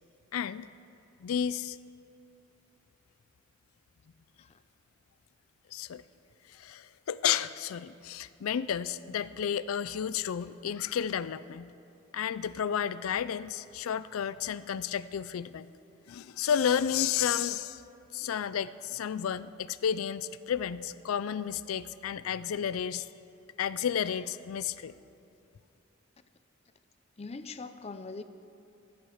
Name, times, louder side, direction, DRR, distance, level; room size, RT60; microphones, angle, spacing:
voice 1, 0.3-0.7 1.2-1.8 5.7-6.0 6.5-11.7 12.1-15.7 16.1-17.8 18.1-23.1 23.6-24.9, left 8 dB, 90° left, 16 dB, 0.4 m, -32 dB
voice 2, 27.2-28.2, left 3 dB, 30° left, 11 dB, 0.5 m, -41 dB
15.0 x 12.0 x 6.4 m, 2.8 s
head